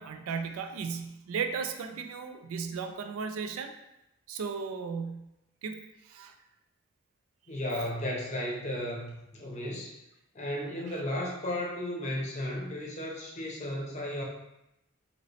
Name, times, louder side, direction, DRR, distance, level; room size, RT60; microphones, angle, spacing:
voice 1, 0.0-3.7 4.3-5.3 5.6-5.8 6.1-6.3 10.9-11.0, right 5 dB, 90° right, 7 dB, 0.3 m, -35 dB
voice 2, 7.5-10.0 10.3-14.2, left 1 dB, 35° left, -3 dB, 0.6 m, -34 dB
2.8 x 2.8 x 3.0 m, 0.88 s
head